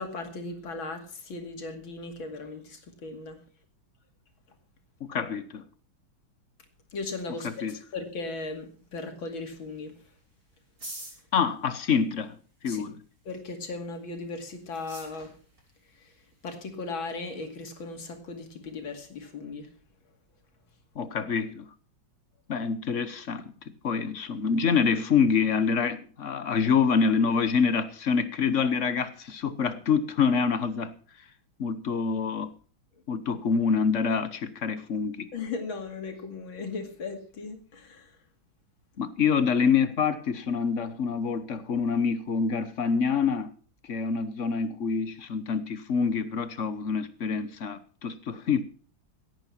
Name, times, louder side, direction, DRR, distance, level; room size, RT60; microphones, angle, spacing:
voice 1, 0.0-3.4 6.9-7.5 7.9-9.9 12.7-12.8 13.3-15.3 16.0-16.1 16.4-19.7 35.3-38.1, left 3 dB, 80° left, 3.1 m, -37 dB
voice 2, 5.0-5.6 7.4-7.8 11.3-12.4 12.6-13.0 20.9-21.7 22.5-23.5 23.8-30.9 31.6-32.5 33.1-35.3 39.0-43.5 43.8-48.6, left 6 dB, 45° left, 1.2 m, -26 dB
sound 1, 6.7-19.3, right 1 dB, 45° right, 6.4 m, -52 dB
17.0 x 9.0 x 5.8 m
omnidirectional pair, 2.1 m